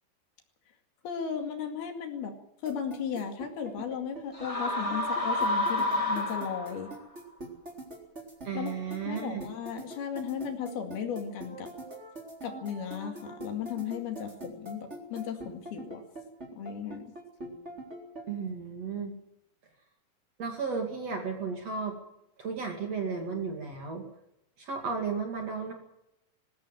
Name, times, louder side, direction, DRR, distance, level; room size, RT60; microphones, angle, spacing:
voice 1, 1.0-2.3 2.6-6.9 8.5-8.7 9.1-11.7 12.4-16.0 16.6-17.1, left 7 dB, 65° left, 4 dB, 4.0 m, -36 dB
sound 1, 2.7-18.2, right 1 dB, 15° right, 3.4 m, -43 dB
sound 2, 4.3-7.0, left 1 dB, 25° left, 0.7 m, -29 dB
voice 2, 8.4-9.4 18.3-19.2 20.4-21.9 22.4-24.1 24.6-25.7, right 5 dB, 45° right, 3 dB, 3.0 m, -34 dB
20.5 x 15.5 x 9.1 m, 0.84 s
omnidirectional pair, 4.9 m